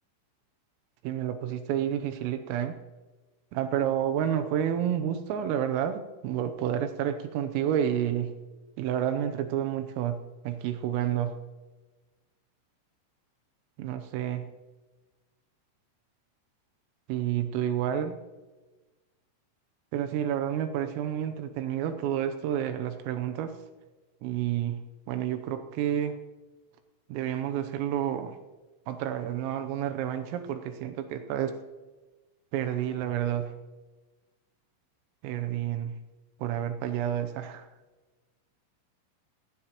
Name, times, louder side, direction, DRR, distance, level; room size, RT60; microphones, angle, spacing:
voice 1, 1.1-2.8 3.5-8.4 8.8-11.4 13.8-14.5 17.1-18.2 19.9-23.6 24.2-24.8 25.1-26.2 27.1-28.4 28.9-31.6 32.5-33.5 35.2-36.0 36.4-37.7, right 10 dB, 85° right, 7 dB, 3.4 m, -30 dB
17.5 x 17.5 x 3.0 m, 1.2 s
omnidirectional pair, 5.9 m